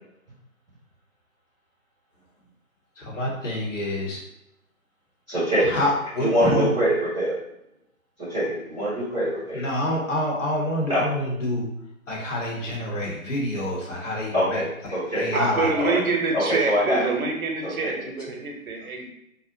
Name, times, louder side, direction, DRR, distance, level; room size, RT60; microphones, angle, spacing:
voice 1, 3.0-4.2 5.6-6.7 9.5-11.7 12.1-14.6 15.1-16.0, left 1 dB, 60° left, -3 dB, 0.9 m, -27 dB
voice 2, 5.3-5.7 6.2-7.3 8.2-9.6 10.9-11.0 14.3-15.4 15.7-16.0 16.3-17.0 17.6-18.1, equal, ahead, -26 dB, 0.7 m, -24 dB
voice 3, 15.3-19.0, right 4 dB, 75° right, 2 dB, 0.7 m, -26 dB
2.5 x 2.0 x 2.6 m, 0.83 s
hypercardioid pair, 160°, 43 cm